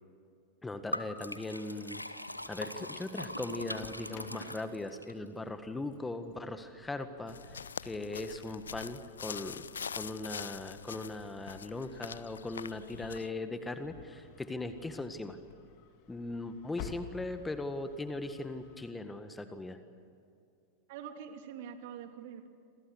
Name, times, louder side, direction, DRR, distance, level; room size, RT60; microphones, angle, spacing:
voice 1, 0.6-2.0 2.5-7.5 7.8-9.6 9.9-15.4 16.1-19.8, left 2 dB, 10° left, 9 dB, 1.7 m, -39 dB
Liquid, 0.9-5.1, left 1 dB, 85° left, 1.4 m, -41 dB
Engine starting, 2.0-18.9, left 9 dB, 45° left, 2.9 m, -55 dB
sound 1, 7.3-13.3, left 7 dB, 70° left, 0.6 m, -44 dB
voice 2, 20.9-22.5, right 8 dB, 50° right, 6 dB, 3.0 m, -45 dB
29.0 x 27.0 x 6.5 m, 2.5 s
figure-of-eight pair, 90°, 0 cm